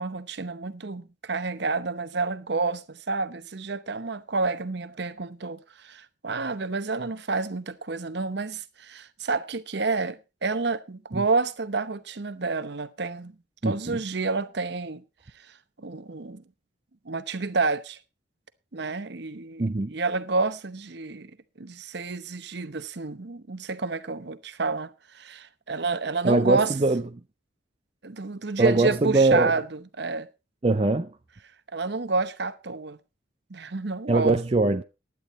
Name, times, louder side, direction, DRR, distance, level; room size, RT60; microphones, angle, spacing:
voice 1, 0.0-13.3 13.6-15.0 15.8-16.4 17.0-18.0 18.7-21.3 21.6-26.7 28.0-29.6 30.0-30.3 31.7-33.0 33.5-34.4, right 3 dB, 55° right, 0.9 m, -29 dB
voice 2, 13.6-14.0 19.6-19.9 26.2-27.0 28.6-29.5 30.6-31.2 34.1-34.8, right 2 dB, 30° right, 0.5 m, -22 dB
16.0 x 11.0 x 3.1 m
head